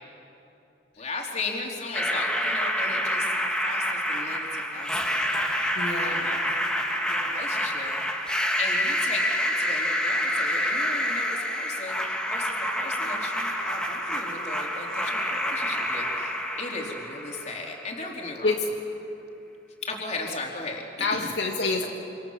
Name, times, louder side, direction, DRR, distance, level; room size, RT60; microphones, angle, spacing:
voice 1, 1.0-3.3 3.6-5.3 6.0-6.4 7.1-7.9 8.6-18.5 19.8-20.8 21.1-21.3, left 3 dB, 40° left, 0 dB, 3.9 m, -36 dB
sound 1, 1.9-17.9, equal, 5° left, 2.3 m, -27 dB
voice 2, 5.7-6.3 18.4-18.7 21.0-21.9, left 3 dB, 80° left, 1 dB, 2.3 m, -27 dB
27.0 x 27.0 x 7.5 m, 2.9 s
head